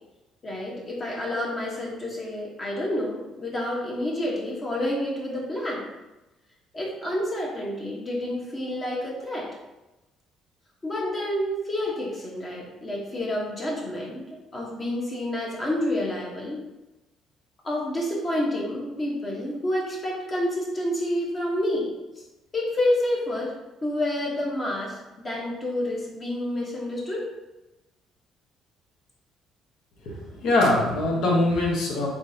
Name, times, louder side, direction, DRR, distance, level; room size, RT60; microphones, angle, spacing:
voice 1, 0.4-5.9 6.7-9.5 10.8-14.2 14.5-16.6 17.6-21.9 22.5-23.6 23.8-25.0 25.2-27.3, left 1 dB, 30° left, -3 dB, 0.9 m, -29 dB
voice 2, 30.0-32.1, left 2 dB, 75° left, -1 dB, 1.1 m, -23 dB
3.7 x 3.6 x 2.7 m, 1.0 s
cardioid pair, 125°, 0 cm